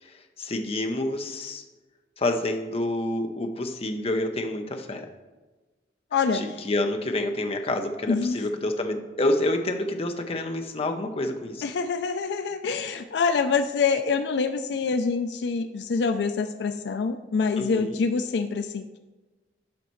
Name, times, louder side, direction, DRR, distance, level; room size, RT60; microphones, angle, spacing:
voice 1, 0.4-1.6 2.2-5.1 6.3-11.6 17.6-18.0, left 1 dB, 35° left, 5 dB, 0.7 m, -28 dB
voice 2, 6.1-6.6 8.1-8.4 11.6-19.0, left 5 dB, 70° left, 9 dB, 0.4 m, -26 dB
9.4 x 5.6 x 3.1 m, 1.2 s
head